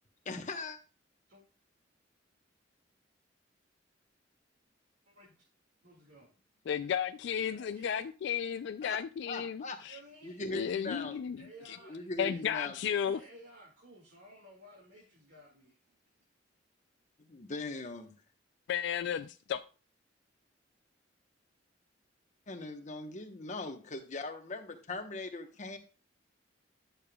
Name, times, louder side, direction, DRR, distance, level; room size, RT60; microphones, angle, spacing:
voice 1, 0.2-0.8 8.8-9.0 9.3-9.8 10.2-11.2 11.8-12.8 17.2-18.1 22.5-25.8, left 2 dB, 40° left, 5 dB, 1.0 m, -40 dB
voice 2, 5.1-5.4 5.8-6.3 7.3-8.1 9.9-10.4 11.4-12.5 13.0-15.9, right 1 dB, 70° right, -3 dB, 2.1 m, -55 dB
voice 3, 6.7-10.0 10.4-11.4 11.7-11.8 12.2-13.2 18.7-19.6, left 8 dB, 65° left, 10 dB, 0.3 m, -33 dB
10.5 x 6.8 x 2.3 m, 0.35 s
head